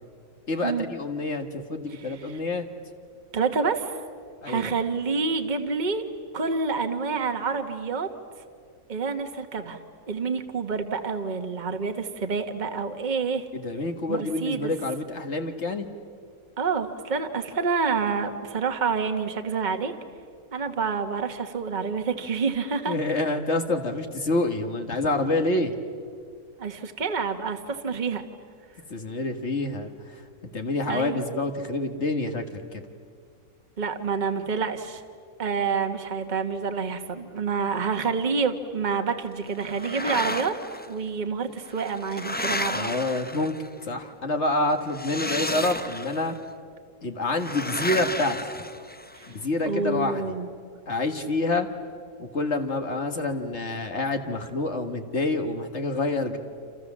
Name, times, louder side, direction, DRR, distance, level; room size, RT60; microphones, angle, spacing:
voice 1, 0.5-2.6 4.4-4.7 13.5-15.9 22.9-25.7 28.9-30.2 30.5-32.8 42.7-43.6 43.9-46.4 47.0-48.4 49.3-50.2 50.9-51.7 52.2-56.4, left 2 dB, 50° left, 5 dB, 1.9 m, -27 dB
voice 2, 1.9-2.4 3.3-3.9 4.5-6.1 6.3-8.1 8.9-9.8 10.1-13.5 14.1-14.7 16.6-19.9 20.5-23.0 26.6-28.2 30.9-31.2 33.8-35.0 35.4-40.6 40.8-42.9 49.1-49.3 49.7-50.5, right 5 dB, 30° right, 6 dB, 1.5 m, -28 dB
sound 1, 39.6-40.9 41.7-43.8 44.9-46.3 47.4-49.3, left 1 dB, 10° left, 0.7 m, -32 dB
28.5 x 28.0 x 7.4 m, 2.1 s
omnidirectional pair, 1.6 m